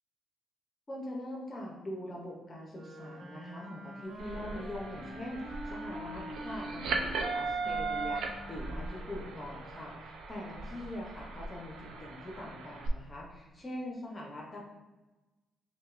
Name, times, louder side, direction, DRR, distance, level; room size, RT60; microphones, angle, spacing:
voice 1, 0.9-14.6, left 1 dB, 20° left, -2 dB, 0.6 m, -43 dB
Wind instrument woodwind instrument, 2.7-10.0, right 1 dB, 70° right, 1.1 m, -45 dB
sound 1, 4.2-12.9, right 3 dB, 90° right, 0.4 m, -38 dB
5.9 x 2.1 x 2.4 m, 1.1 s
cardioid pair, 145°, 0 cm